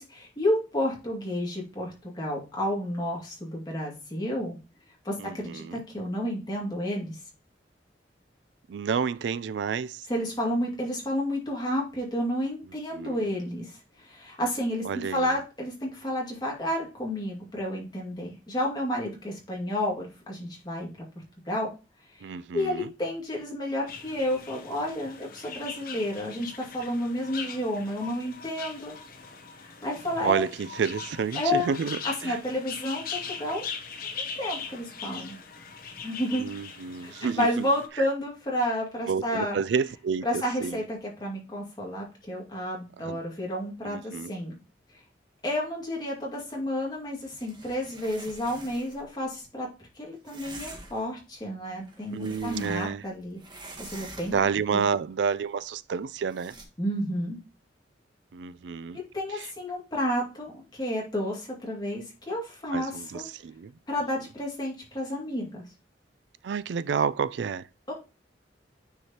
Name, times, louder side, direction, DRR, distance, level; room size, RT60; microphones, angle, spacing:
voice 1, 0.0-4.6 5.0-7.2 10.1-20.9 21.5-21.7 22.5-29.0 29.6-30.4 31.3-31.7 32.0-33.7 34.1-35.4 36.0-36.4 37.0-39.6 40.2-44.5 45.4-49.7 50.0-54.3 54.7-54.8 56.8-57.4 59.1-63.2 63.9-65.6 67.9-68.0, left 1 dB, 25° left, 2.2 m, -31 dB
voice 2, 5.2-5.8 8.7-10.1 12.9-13.2 14.8-15.3 22.2-22.9 30.2-32.4 36.3-37.7 38.0-38.1 39.1-40.8 43.0-43.2 43.8-44.3 52.1-53.0 54.3-56.5 58.3-59.0 59.3-59.5 62.7-63.7 66.4-67.7, right 6 dB, 70° right, 0.3 m, -30 dB
sound 1, 23.9-37.9, left 6 dB, 50° left, 0.9 m, -40 dB
sound 2, 47.1-49.1 50.2-51.1 51.7-53.1 53.4-54.6 56.3-56.6, right 2 dB, 25° right, 1.3 m, -46 dB
9.4 x 4.7 x 2.9 m
head